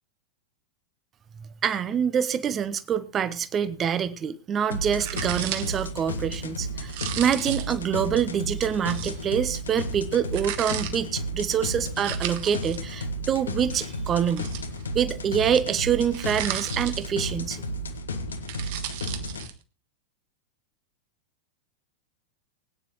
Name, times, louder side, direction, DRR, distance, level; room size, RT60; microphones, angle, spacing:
voice 1, 1.4-14.5 14.9-17.6, right 8 dB, 25° right, 14 dB, 1.0 m, -26 dB
sound 1, 4.7-19.5, equal, 70° left, 1.4 m, -33 dB
Biting Crunchy B, 5.0-5.9 6.9-7.8 8.9-9.2 10.3-10.9 12.0-12.8 14.2-15.0 16.1-17.3 18.3-19.5, right 12 dB, 50° right, 1.4 m, -35 dB
20.5 x 9.6 x 3.1 m, 0.35 s
figure-of-eight pair, 90°, 0 cm